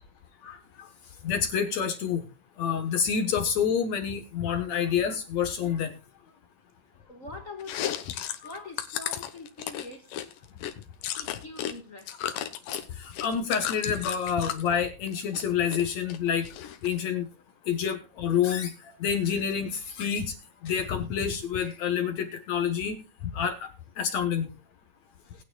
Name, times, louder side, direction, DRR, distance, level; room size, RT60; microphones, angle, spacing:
voice 1, 0.4-0.9 1.2-2.3 2.6-5.9 8.4-8.5 13.0-16.5 16.8-17.3 17.7-20.3 20.6-23.0 23.3-23.7 24.0-24.5, left 7 dB, 65° left, 2.2 m, -28 dB
voice 2, 7.1-8.1 8.4-10.2 11.2-12.3, left 3 dB, 45° left, 1.0 m, -43 dB
Chewing mastication, 7.6-11.7 12.0-14.7 15.1-15.8 16.1-17.0, left 11 dB, 80° left, 2.7 m, -34 dB
20.0 x 9.2 x 2.3 m
omnidirectional pair, 3.8 m